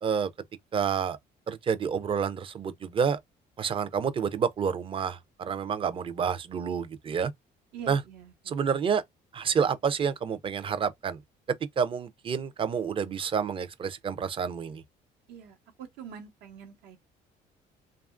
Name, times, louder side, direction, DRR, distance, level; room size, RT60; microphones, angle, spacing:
voice 1, 0.7-1.2 1.5-3.2 3.6-7.3 7.9-8.0 8.5-9.0 9.3-11.2 11.8-14.8, right 6 dB, 30° right, 0.4 m, -29 dB
voice 2, 7.7-8.6 15.3-17.0, right 8 dB, 85° right, 0.9 m, -45 dB
2.9 x 2.3 x 2.4 m
cardioid pair, 110°, 17 cm